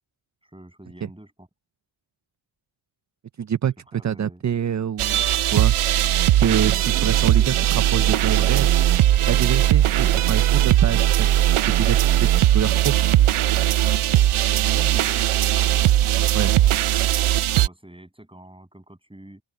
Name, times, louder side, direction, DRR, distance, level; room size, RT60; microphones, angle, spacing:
voice 1, 0.4-1.5 3.9-4.4 14.5-17.0 17.5-19.4, right 1 dB, 10° right, 7.8 m, -45 dB
voice 2, 3.4-3.7 4.0-5.7 6.4-8.7 9.3-12.3 12.5-12.9 16.3-16.5, right 8 dB, 40° right, 0.5 m, -26 dB
sound 1, 5.0-17.7, right 12 dB, 85° right, 0.6 m, -19 dB
open air
wide cardioid pair, 95°, 49 cm